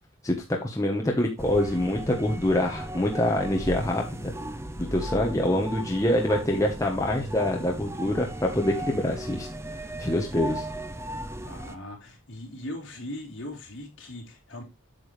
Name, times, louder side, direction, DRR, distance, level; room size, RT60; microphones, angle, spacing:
voice 1, 0.2-4.3 4.8-9.5 10.0-10.7, left 1 dB, 15° left, 0 dB, 1.2 m, -25 dB
sound 1, 1.4-11.8, right 1 dB, 10° right, 0.6 m, -36 dB
voice 2, 11.4-14.6, left 1 dB, 55° left, -1 dB, 3.8 m, -39 dB
8.9 x 7.1 x 3.3 m, 0.23 s
head